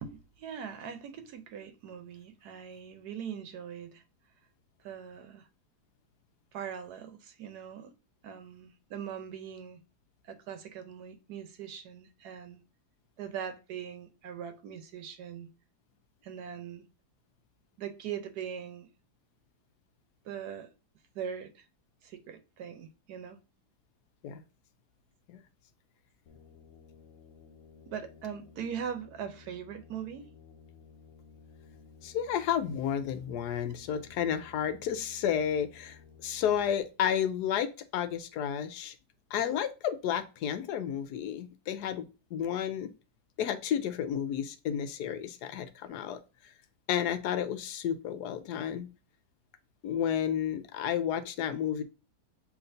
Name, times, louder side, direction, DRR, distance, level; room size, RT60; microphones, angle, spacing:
voice 1, 0.0-4.0 4.8-5.5 6.5-8.0 8.2-9.8 10.2-12.6 13.2-15.5 16.2-16.9 17.8-18.9 20.2-20.7 21.1-21.7 22.0-23.4 27.9-30.3, right 8 dB, 85° right, 1.2 m, -41 dB
sound 1, 26.3-36.8, left 6 dB, 60° left, 0.8 m, -55 dB
voice 2, 32.0-38.9 39.3-42.9 43.4-46.2 46.9-48.9 49.8-51.8, left 9 dB, 85° left, 1.2 m, -31 dB
7.2 x 2.9 x 2.6 m
omnidirectional pair, 1.7 m